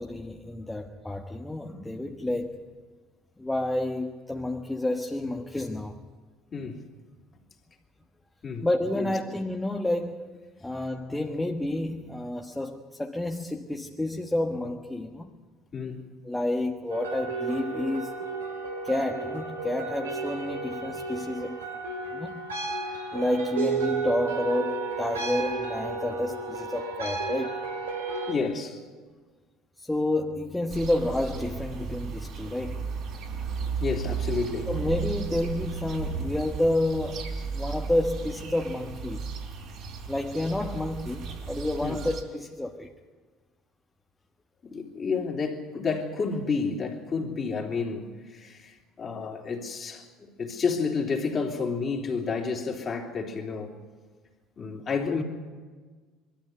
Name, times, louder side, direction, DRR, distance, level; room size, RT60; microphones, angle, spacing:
voice 1, 0.0-2.8 3.4-6.0 8.6-15.3 16.2-18.1 18.8-21.6 22.1-22.4 23.1-27.7 29.8-32.8 34.7-39.2 40.1-42.9, left 1 dB, 10° left, 1.4 m, -30 dB
voice 2, 6.5-6.8 8.4-8.7 8.9-9.1 15.7-16.0 28.3-28.8 33.8-34.7 41.8-42.0 44.6-53.7 54.6-55.2, left 4 dB, 35° left, 3.3 m, -30 dB
sound 1, 16.9-28.3, right 4 dB, 90° right, 3.0 m, -33 dB
sound 2, 30.7-42.2, right 5 dB, 55° right, 3.9 m, -35 dB
22.0 x 14.0 x 9.5 m
hypercardioid pair, 70°, 0 cm